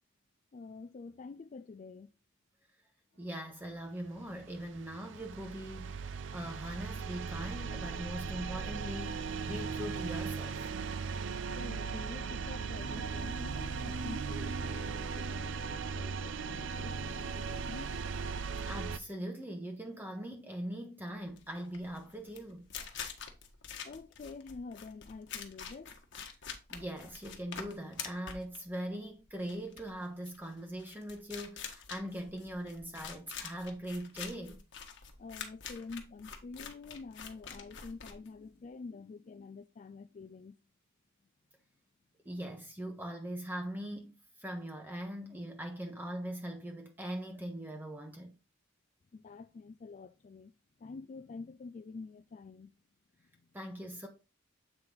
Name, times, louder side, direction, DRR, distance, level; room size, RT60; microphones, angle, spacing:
voice 1, 0.5-2.1 11.5-18.0 23.8-26.0 35.2-40.6 49.1-50.5 50.8-52.7 53.3-53.5, left 4 dB, 40° left, 0.3 m, -47 dB
voice 2, 3.2-10.7 18.6-22.7 26.7-34.6 42.2-48.3 53.5-54.1, equal, 10° right, 0.9 m, -41 dB
sound 1, 4.1-19.0, right 5 dB, 60° right, 0.5 m, -38 dB
sound 2, 21.3-38.7, left 7 dB, 60° left, 1.2 m, -46 dB
7.8 x 4.4 x 3.8 m
head